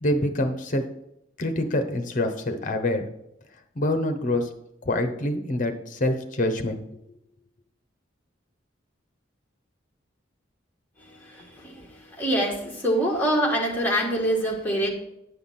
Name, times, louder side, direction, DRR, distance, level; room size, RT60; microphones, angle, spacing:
voice 1, 0.0-0.8 1.4-3.1 3.8-4.5 4.8-6.8, left 1 dB, 40° left, 6 dB, 0.9 m, -25 dB
voice 2, 11.2-14.9, right 1 dB, 10° left, -2 dB, 1.5 m, -25 dB
9.4 x 5.8 x 4.2 m, 0.80 s
head